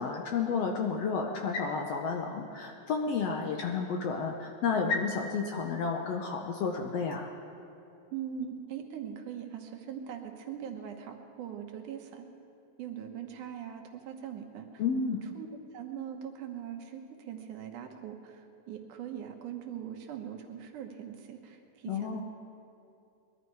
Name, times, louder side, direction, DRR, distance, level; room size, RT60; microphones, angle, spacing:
voice 1, 0.0-7.3 14.8-15.2 21.9-22.2, left 5 dB, 70° left, 2 dB, 1.6 m, -31 dB
voice 2, 8.1-12.3 12.8-14.8 15.4-15.5 15.7-22.2, right 9 dB, 75° right, 4 dB, 2.5 m, -41 dB
21.0 x 12.5 x 4.7 m, 2.6 s
omnidirectional pair, 3.7 m